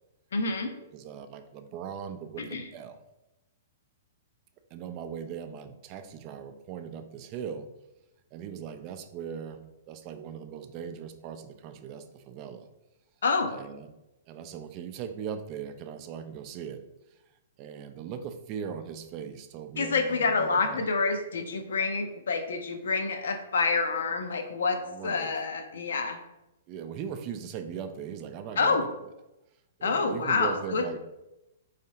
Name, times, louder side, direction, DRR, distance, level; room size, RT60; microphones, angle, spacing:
voice 1, 0.3-0.7 2.4-2.7 13.2-13.5 19.8-26.2 28.6-28.8 29.8-31.0, left 4 dB, 75° left, 6 dB, 0.5 m, -27 dB
voice 2, 0.9-3.0 4.7-7.7 8.3-12.7 13.5-13.9 14.3-16.8 17.1-17.2 17.6-20.9 24.7-25.3 26.7-28.9 29.8-31.0, right 7 dB, 40° right, 8 dB, 0.4 m, -39 dB
3.7 x 3.2 x 2.8 m, 0.93 s
hypercardioid pair, 120°, 0 cm